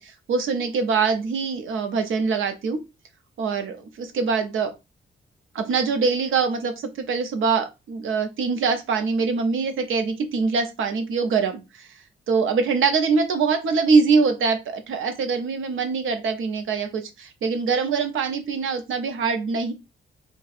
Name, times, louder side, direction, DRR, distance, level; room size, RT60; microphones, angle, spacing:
voice 1, 0.0-2.8 3.4-4.7 5.5-11.9 12.3-19.7, right 5 dB, 85° right, 7 dB, 0.7 m, -23 dB
2.6 x 2.3 x 4.0 m, 0.25 s
cardioid pair, 125°, 20 cm